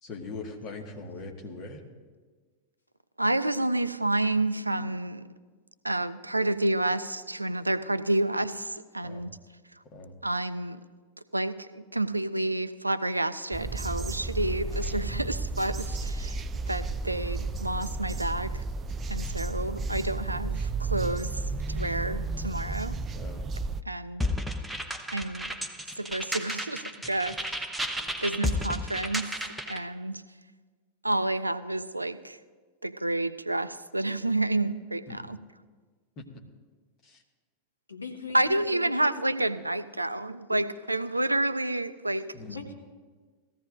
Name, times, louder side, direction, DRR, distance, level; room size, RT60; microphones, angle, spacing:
voice 1, 0.0-1.8 9.0-9.3 9.8-10.1 23.1-23.5 35.1-35.2 36.2-36.3 37.0-37.2 42.3-42.6, left 3 dB, 35° left, 2 dB, 1.7 m, -41 dB
voice 2, 3.2-5.3 5.8-9.3 10.2-10.8 11.3-16.4 16.7-18.6 19.1-21.4 21.7-23.0 23.9-24.2 25.1-25.5 26.0-27.7 28.0-29.4 29.7-30.2 31.0-32.4 32.8-35.4 38.3-42.3, right 1 dB, 85° right, 14 dB, 0.4 m, -29 dB
sound 1, 13.5-23.8, right 3 dB, 25° right, 0.4 m, -32 dB
sound 2, 24.2-29.8, left 1 dB, 5° right, 0.8 m, -33 dB
voice 3, 37.9-39.1 39.9-40.0 40.5-40.6 42.5-42.7, left 4 dB, 75° left, 2 dB, 1.5 m, -39 dB
19.0 x 14.5 x 2.6 m, 1.4 s
figure-of-eight pair, 90°, 0 cm